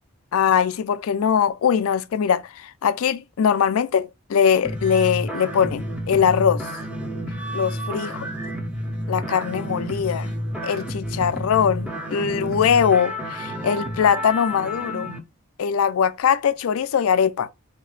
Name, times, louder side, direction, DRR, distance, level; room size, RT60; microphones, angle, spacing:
voice 1, 0.3-6.6 7.5-8.1 9.1-10.3 10.6-15.2 15.6-17.5, left 7 dB, 80° left, 0.4 m, -21 dB
sound 1, 4.6-15.2, equal, 5° right, 0.6 m, -30 dB
3.3 x 2.8 x 4.0 m
head